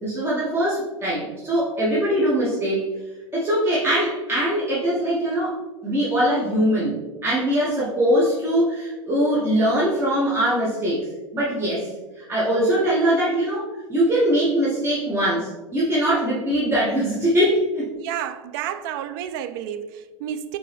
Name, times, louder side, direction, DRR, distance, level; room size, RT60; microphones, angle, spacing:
voice 1, 0.0-2.9 3.3-11.1 11.3-17.9, equal, 15° right, 1.2 m, -22 dB
voice 2, 17.9-20.6, right 10 dB, 45° right, 0.4 m, -31 dB
4.9 x 3.0 x 3.4 m
figure-of-eight pair, 85°, 16 cm